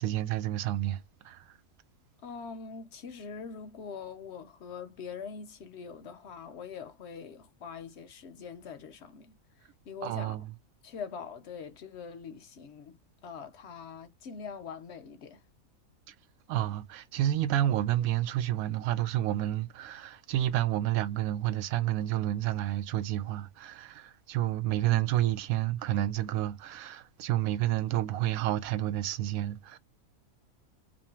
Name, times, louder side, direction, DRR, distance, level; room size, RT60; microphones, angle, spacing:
voice 1, 0.0-1.6 10.0-10.5 16.1-16.2 16.5-29.8, right 13 dB, 85° right, 1.0 m, -30 dB
voice 2, 2.2-9.4 9.9-10.4 10.8-15.4, left 6 dB, 65° left, 0.7 m, -43 dB
2.8 x 2.5 x 4.2 m
omnidirectional pair, 1.4 m